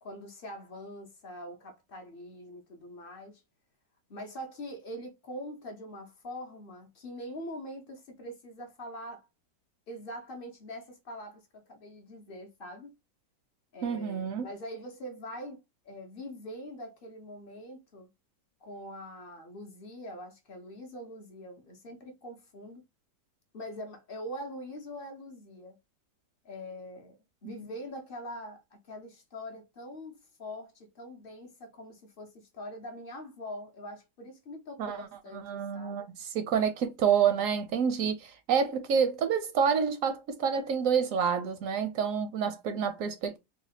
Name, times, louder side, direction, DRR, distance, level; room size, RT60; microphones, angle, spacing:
voice 1, 0.0-3.4 4.1-9.3 9.9-12.9 13.7-18.1 18.6-22.8 23.5-25.8 26.4-36.1, equal, 55° left, 0.6 m, -43 dB
voice 2, 13.8-14.5 34.8-35.1 35.3-43.4, right 7 dB, 65° right, 0.8 m, -28 dB
4.0 x 2.3 x 2.8 m
omnidirectional pair, 1.9 m